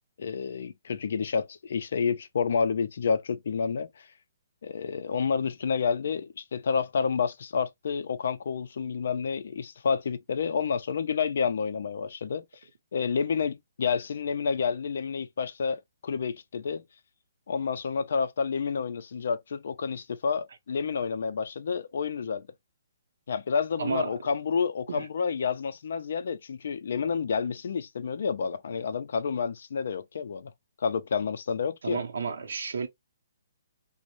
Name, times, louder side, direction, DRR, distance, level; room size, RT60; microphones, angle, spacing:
voice 1, 0.2-4.1 4.6-12.4 12.9-16.8 17.5-22.5 23.3-30.5 30.8-32.0, left 6 dB, 50° left, 0.3 m, -29 dB
voice 2, 23.8-24.2 24.9-25.1 31.8-32.9, right 5 dB, 70° right, 0.7 m, -32 dB
2.5 x 2.0 x 2.9 m
hypercardioid pair, 180°, 0 cm